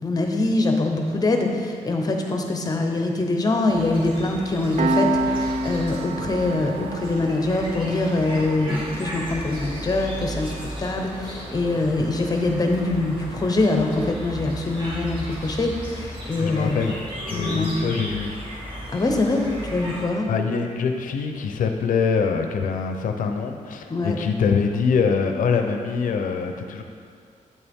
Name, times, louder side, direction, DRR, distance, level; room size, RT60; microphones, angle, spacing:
voice 1, 0.0-16.9 17.3-17.8 18.9-20.3 23.9-24.2, left 2 dB, 30° left, 3 dB, 0.8 m, -24 dB
sound 1, 3.7-20.1, equal, 35° right, 2.0 m, -35 dB
Piano, 4.8-15.9, right 1 dB, 55° right, 0.5 m, -32 dB
voice 2, 16.4-16.9 17.3-18.3 20.3-26.8, left 5 dB, 90° left, 5 dB, 0.6 m, -24 dB
8.3 x 7.0 x 3.6 m, 2.3 s
wide cardioid pair, 140°, 14 cm